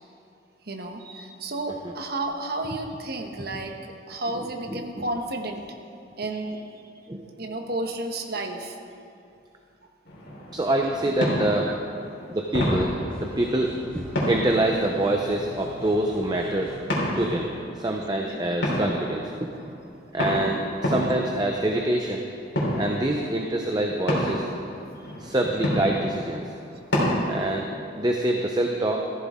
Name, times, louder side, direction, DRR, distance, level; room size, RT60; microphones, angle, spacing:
voice 1, 0.7-3.8 4.1-5.8 6.2-6.6 7.4-8.8 11.6-11.8 18.2-18.4, right 2 dB, 55° right, 4 dB, 1.2 m, -32 dB
voice 2, 4.4-5.0 7.1-7.3 10.5-11.7 12.3-12.9 13.2-16.7 17.1-17.5 17.8-19.3 20.1-22.2 22.8-24.5 25.2-26.5 27.2-27.7 28.0-29.1, right 1 dB, 20° right, 1 dB, 0.7 m, -25 dB
sound 1, 10.0-27.6, equal, 65° left, 4.0 m, -30 dB
sound 2, 13.1-17.5, left 1 dB, 5° left, 2.1 m, -43 dB
14.5 x 14.5 x 3.7 m, 2.5 s
head